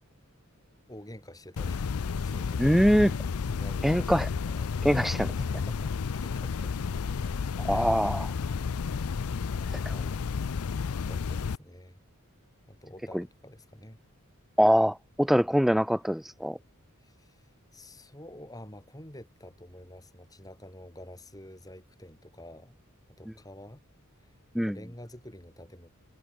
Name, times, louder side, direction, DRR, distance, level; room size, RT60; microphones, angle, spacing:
voice 1, 0.9-1.9 2.2-4.8 5.1-7.0 7.6-8.1 9.5-10.2 11.0-12.0 12.7-14.0 17.0-22.8 23.1-23.8 24.2-25.9, left 1 dB, 15° left, 7.7 m, -49 dB
sound 1, 1.6-11.6, left 5 dB, 80° left, 0.5 m, -31 dB
voice 2, 2.6-3.1 3.8-4.3 4.8-5.3 7.6-8.3 9.7-9.8 14.6-16.6 24.5-24.7, equal, ahead, 0.5 m, -23 dB
head